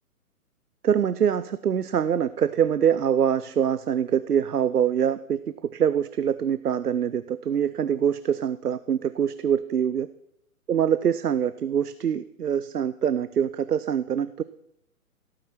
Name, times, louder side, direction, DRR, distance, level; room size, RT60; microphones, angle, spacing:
voice 1, 0.8-5.4 5.7-10.1 10.7-14.4, right 8 dB, 85° right, 15 dB, 0.6 m, -24 dB
15.0 x 9.1 x 4.4 m, 0.81 s
figure-of-eight pair, 130°, 45 cm